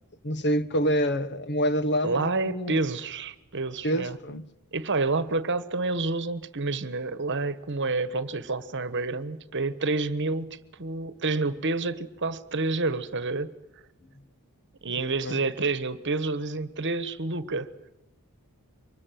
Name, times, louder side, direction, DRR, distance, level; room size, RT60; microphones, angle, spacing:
voice 1, 0.2-2.8 3.8-4.5 15.2-15.4, equal, 50° left, 1.2 m, -27 dB
voice 2, 2.0-4.2 4.7-13.5 14.8-17.7, right 3 dB, 55° right, 1.3 m, -29 dB
24.5 x 21.0 x 9.2 m
head